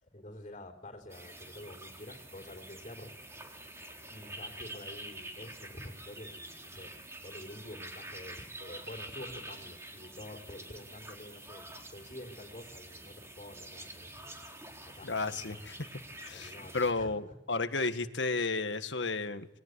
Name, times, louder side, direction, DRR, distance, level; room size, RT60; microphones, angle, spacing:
voice 1, 0.0-3.1 4.1-6.9 7.2-14.4 14.8-15.1 15.5-15.7 16.3-17.4, left 1 dB, 40° left, -2 dB, 4.2 m, -48 dB
sound 1, 1.1-16.9, right 1 dB, 15° right, 3.9 m, -47 dB
voice 2, 15.0-15.7 16.2-19.5, left 3 dB, 80° left, 9 dB, 1.8 m, -33 dB
28.0 x 21.0 x 8.3 m, 0.86 s
head